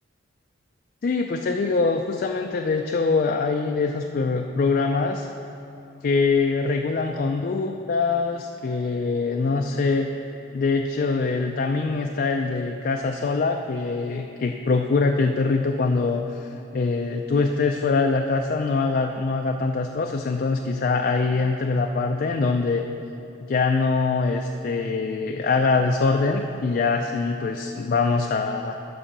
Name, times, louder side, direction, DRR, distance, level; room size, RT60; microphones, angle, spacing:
voice 1, 1.0-5.3 6.0-10.1 10.5-22.8 23.4-28.8, left 4 dB, 45° left, 3 dB, 0.3 m, -23 dB
10.0 x 4.8 x 6.6 m, 2.7 s
head